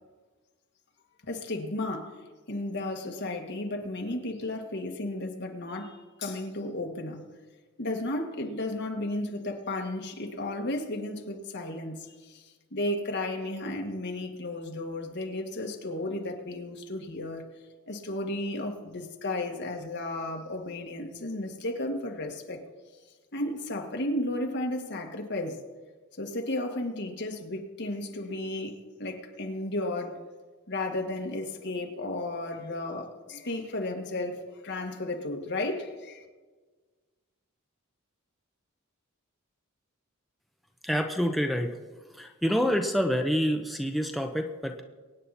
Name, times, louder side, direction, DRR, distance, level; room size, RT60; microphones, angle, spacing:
voice 1, 1.2-2.2 2.5-7.3 7.8-17.4 17.9-22.6 23.3-25.6 26.2-30.2 30.7-36.3, left 1 dB, 55° left, 1.9 m, -34 dB
voice 2, 40.8-41.7 42.2-44.8, equal, ahead, 0.8 m, -27 dB
23.5 x 9.5 x 4.2 m
head